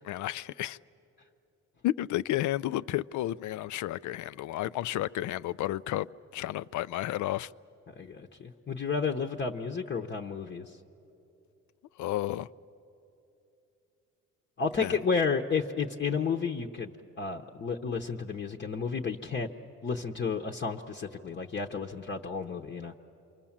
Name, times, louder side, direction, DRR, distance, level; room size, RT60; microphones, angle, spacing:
voice 1, 0.0-0.8 1.8-7.5 12.0-12.5 14.8-15.0, left 14 dB, 75° left, 0.5 m, -32 dB
voice 2, 8.0-10.7 14.6-16.9 17.2-19.5 19.8-22.9, left 5 dB, 35° left, 0.9 m, -32 dB
28.0 x 24.0 x 7.3 m
cardioid pair, 90°, 30 cm